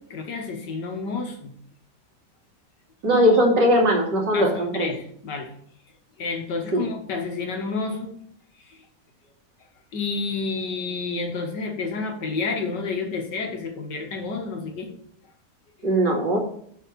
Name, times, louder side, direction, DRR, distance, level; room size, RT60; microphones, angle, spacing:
voice 1, 0.0-1.5 3.1-3.4 4.3-5.5 6.2-8.2 8.7-8.8 9.9-14.9, left 4 dB, 80° left, 4 dB, 2.1 m, -30 dB
voice 2, 3.0-4.9 6.7-6.8 15.8-16.4, equal, 85° right, -1 dB, 3.1 m, -19 dB
6.6 x 5.7 x 7.3 m, 0.65 s
omnidirectional pair, 1.8 m